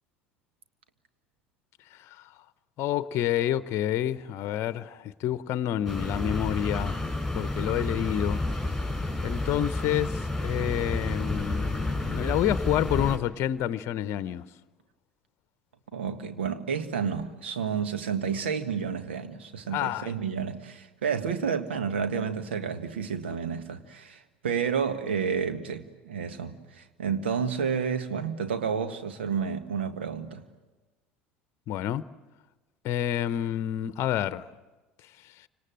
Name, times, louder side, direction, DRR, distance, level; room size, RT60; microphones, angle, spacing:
voice 1, 1.9-2.3 2.8-7.0 7.3-8.4 9.2-14.4 19.7-20.1 23.3-23.4 31.7-32.0 32.8-34.5 35.2-35.5, left 11 dB, 50° left, 0.9 m, -29 dB
sound 1, 5.9-13.2, left 2 dB, ahead, 4.9 m, -30 dB
voice 2, 15.9-30.4, right 6 dB, 75° right, 1.7 m, -30 dB
29.0 x 26.0 x 7.7 m
figure-of-eight pair, 65°, 6 cm